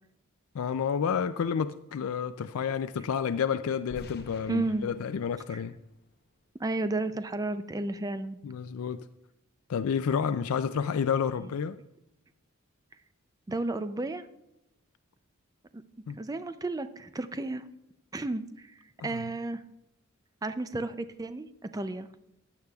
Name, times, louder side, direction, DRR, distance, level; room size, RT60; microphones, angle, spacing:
voice 1, 0.5-5.8 8.4-9.1 9.7-11.8 16.1-16.2 19.0-19.2, left 7 dB, 75° left, 0.4 m, -30 dB
sound 1, 3.9-6.9, left 2 dB, 50° left, 0.8 m, -50 dB
voice 2, 4.5-4.9 6.6-8.4 13.5-14.3 15.7-15.8 16.2-17.6 18.1-18.7 19.0-19.6 20.4-21.5 21.7-22.1, right 2 dB, 15° right, 0.4 m, -32 dB
15.5 x 11.0 x 2.3 m
head